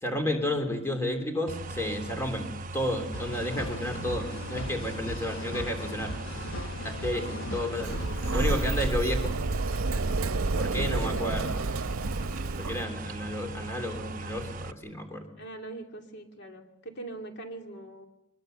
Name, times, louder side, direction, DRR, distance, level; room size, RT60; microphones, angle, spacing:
voice 1, 0.0-6.1 6.8-8.1 8.3-9.3 10.5-11.4 12.6-15.2, left 1 dB, 15° left, 5 dB, 3.1 m, -32 dB
sound 1, 1.5-14.7, right 2 dB, 40° right, 0.8 m, -39 dB
sound 2, 3.1-8.9, left 1 dB, 75° left, 1.2 m, -38 dB
voice 2, 6.9-7.9 10.8-11.4 15.4-18.1, right 1 dB, 55° left, 3 dB, 2.5 m, -43 dB
Sliding door, 7.8-12.8, right 3 dB, 85° right, 0.7 m, -29 dB
23.5 x 21.5 x 6.7 m, 0.91 s
head